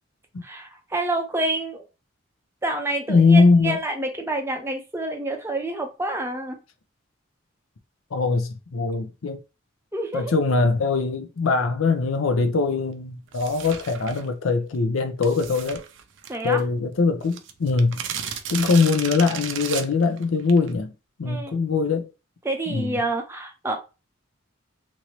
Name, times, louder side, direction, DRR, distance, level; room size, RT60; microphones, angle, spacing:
voice 1, 0.4-1.8 2.6-6.6 9.9-10.3 16.3-16.6 21.2-21.5 22.4-23.8, right 2 dB, 10° right, 0.5 m, -28 dB
voice 2, 3.1-3.8 8.1-9.4 10.1-15.8 16.4-18.0 18.5-20.9 21.2-22.1 22.7-23.0, left 4 dB, 85° left, 0.5 m, -21 dB
sound 1, 13.3-14.3 15.2-16.6 16.9-17.0 17.2-20.7, right 8 dB, 65° right, 0.4 m, -34 dB
3.0 x 2.6 x 3.0 m
head